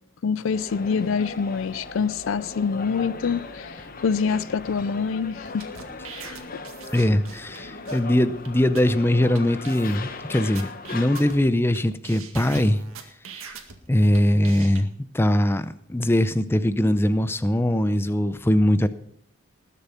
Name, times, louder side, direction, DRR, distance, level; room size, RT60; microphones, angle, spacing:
voice 1, 0.2-5.7 6.1-6.6, left 5 dB, 70° left, 0.4 m, -26 dB
sound 1, 0.5-11.4, left 3 dB, 40° left, 1.0 m, -38 dB
sound 2, 5.5-7.6 7.9-8.0 8.5-8.6 8.8-9.0 9.4-9.5 9.6-10.2 10.6-11.8 12.0-13.8 14.1-14.8, right 6 dB, 85° right, 2.0 m, -41 dB
voice 2, 6.9-12.8 13.9-14.9 15.1-18.9, left 1 dB, 10° left, 0.5 m, -21 dB
20.0 x 6.9 x 5.7 m
head